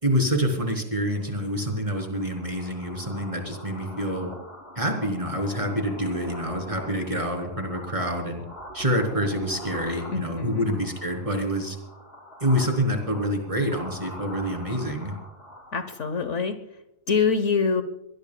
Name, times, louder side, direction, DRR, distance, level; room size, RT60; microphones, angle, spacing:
voice 1, 0.0-4.3 4.7-8.4 8.7-11.8 12.4-15.1, equal, 20° right, 2 dB, 3.4 m, -27 dB
sound 1, 1.1-16.4, equal, 40° left, 3.7 m, -43 dB
voice 2, 10.1-10.7 15.7-16.6 17.1-17.8, left 5 dB, 60° left, 10 dB, 1.3 m, -25 dB
23.0 x 18.0 x 2.3 m, 0.86 s
omnidirectional pair, 1.5 m